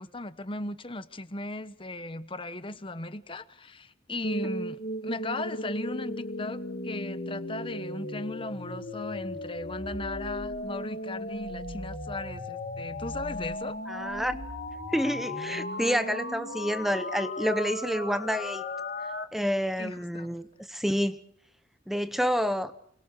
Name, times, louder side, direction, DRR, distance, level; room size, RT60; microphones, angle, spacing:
voice 1, 0.0-13.8 19.8-20.3, left 2 dB, 30° left, 12 dB, 1.1 m, -37 dB
sound 1, 4.2-19.2, left 1 dB, 60° left, 2.3 m, -36 dB
voice 2, 13.9-14.4 14.9-18.6 19.3-21.2 21.9-22.7, equal, ahead, 11 dB, 0.9 m, -28 dB
29.5 x 21.5 x 6.6 m, 0.71 s
head